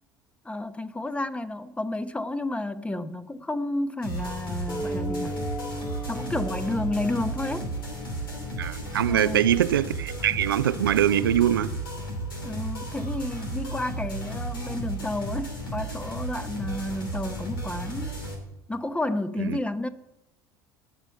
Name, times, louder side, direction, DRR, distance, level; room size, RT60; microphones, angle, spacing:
voice 1, 0.4-5.4 6.1-7.7 9.1-9.4 12.4-18.2 18.7-19.9, left 2 dB, 10° left, 0.9 m, -31 dB
sound 1, 4.0-18.3, right 2 dB, 80° left, 2.8 m, -34 dB
sound 2, 4.7-9.6, equal, 25° left, 2.7 m, -37 dB
voice 2, 8.6-11.7 19.4-19.6, right 11 dB, 80° right, 0.4 m, -23 dB
17.5 x 6.4 x 6.7 m
figure-of-eight pair, 65°, 12 cm